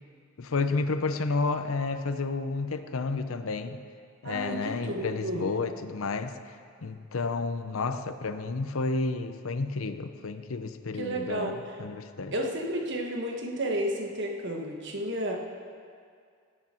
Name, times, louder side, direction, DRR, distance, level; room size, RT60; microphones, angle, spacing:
voice 1, 0.4-3.8 4.2-6.3 6.8-12.3, left 3 dB, 75° left, 10 dB, 0.6 m, -31 dB
voice 2, 4.2-5.5 11.0-11.6 12.3-15.4, right 1 dB, 60° right, 2 dB, 1.4 m, -32 dB
17.0 x 8.7 x 4.4 m, 2.2 s
head